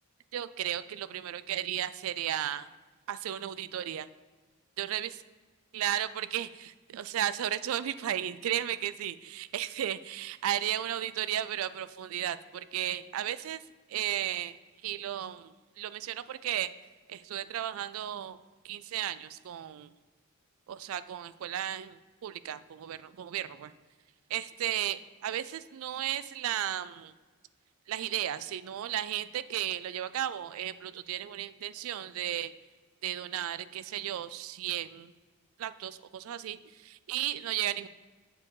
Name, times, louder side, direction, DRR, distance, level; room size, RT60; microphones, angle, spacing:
voice 1, 0.3-2.7 3.1-4.1 4.8-5.1 5.7-13.6 13.9-14.6 14.8-16.7 17.1-18.4 18.6-19.9 20.7-23.7 24.3-27.1 27.9-32.5 33.0-35.1 35.6-37.9, right 11 dB, 65° right, 14 dB, 0.3 m, -34 dB
7.4 x 4.6 x 4.7 m, 1.3 s
head